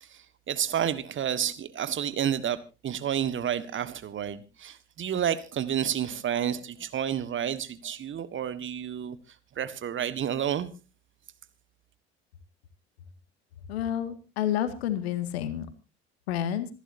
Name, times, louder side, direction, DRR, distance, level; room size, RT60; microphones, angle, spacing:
voice 1, 0.0-2.6 2.8-9.2 9.6-10.7, right 9 dB, 35° right, 1.5 m, -30 dB
voice 2, 13.7-15.7 16.3-16.7, left 10 dB, 70° left, 2.0 m, -29 dB
26.5 x 11.5 x 2.7 m
figure-of-eight pair, 60°, 33 cm